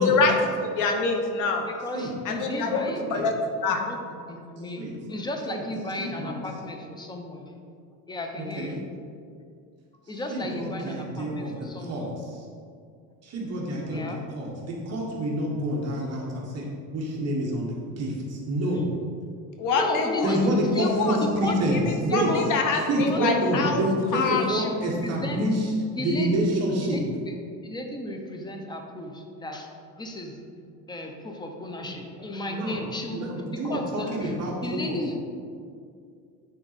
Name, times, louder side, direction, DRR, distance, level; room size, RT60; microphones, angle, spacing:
voice 1, 0.0-1.7 2.2-3.3 3.6-3.8 19.6-20.3 20.8-21.2 22.1-23.8 24.1-24.4, left 4 dB, 55° left, 3 dB, 1.1 m, -25 dB
voice 2, 1.7-3.3 3.7-4.0 4.3-7.5 8.1-8.8 10.1-12.2 13.7-14.2 18.7-18.8 19.7-21.6 22.2-22.5 23.0-23.2 23.6-23.7 24.3-25.4 25.9-26.4 26.7-27.4 27.6-29.7 29.9-30.4 30.9-35.2, left 1 dB, 10° left, 3 dB, 0.6 m, -34 dB
voice 3, 2.6-3.2 4.8-4.9 5.5-5.6 6.0-6.4 8.4-8.8 10.3-12.1 13.2-14.0 14.3-16.7 16.9-17.7 18.0-18.8 20.2-22.3 22.9-25.7 26.0-27.0 31.8-31.9 32.5-32.8 33.1-34.9, right 1 dB, 45° right, -2 dB, 1.3 m, -27 dB
9.6 x 3.9 x 4.1 m, 2.3 s
cardioid pair, 150°, 37 cm